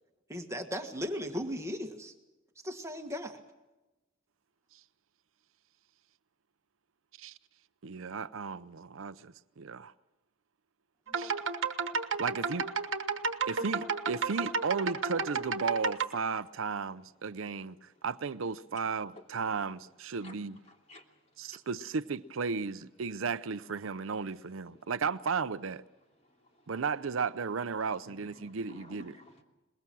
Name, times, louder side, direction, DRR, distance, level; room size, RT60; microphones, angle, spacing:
voice 1, 0.3-2.1 2.6-3.4, equal, 15° right, 1.6 m, -37 dB
voice 2, 7.8-9.9 11.2-11.3 12.2-12.7 13.5-17.8 18.0-20.6 21.4-25.8 26.7-29.1, right 5 dB, 85° right, 0.6 m, -34 dB
sound 1, 11.1-16.1, right 5 dB, 70° right, 1.3 m, -32 dB
voice 3, 15.3-15.8 20.2-20.4 20.6-21.0 23.0-23.2 23.7-24.4 24.7-25.0 26.5-27.0 27.3-29.4, left 1 dB, 35° left, 3.1 m, -55 dB
23.5 x 21.0 x 6.2 m
head